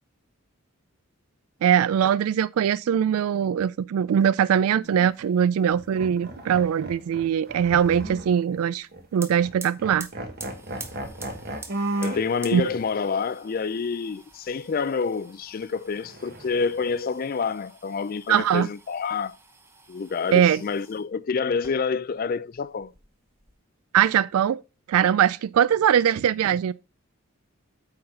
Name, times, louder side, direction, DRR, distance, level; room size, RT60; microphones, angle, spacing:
voice 1, 1.6-10.1 12.5-12.6 18.3-18.7 20.3-20.6 23.9-24.6 24.9-26.7, right 8 dB, 80° right, 0.3 m, -21 dB
sound 1, 4.8-5.1 5.7-8.6 8.9-9.1 9.4-9.5 9.8-12.3 12.7-12.8 16.0-16.9, right 1 dB, 45° right, 1.5 m, -35 dB
sound 2, 9.1-21.1 21.5-22.3 22.5-23.5, right 3 dB, 10° right, 0.9 m, -47 dB
voice 2, 12.0-19.4 19.9-22.9, left 5 dB, 40° left, 0.3 m, -28 dB
8.7 x 3.9 x 5.5 m
head